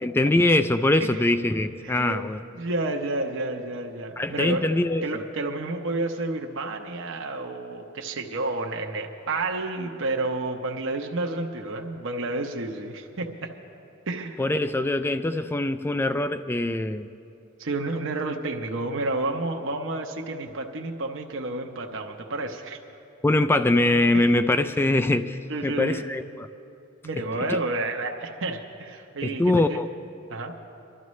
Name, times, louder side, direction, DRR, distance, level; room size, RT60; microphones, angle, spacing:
voice 1, 0.0-2.4 4.2-5.0 14.4-17.1 23.2-26.2 27.5-27.6 29.2-29.9, left 2 dB, 10° left, 11 dB, 0.3 m, -23 dB
voice 2, 1.8-2.2 2.5-4.6 5.0-13.5 14.1-14.4 17.6-22.8 24.1-24.4 25.5-26.1 27.0-29.8 30.3-30.5, right 2 dB, 65° right, 2 dB, 0.8 m, -30 dB
25.0 x 12.5 x 3.2 m, 2.7 s
head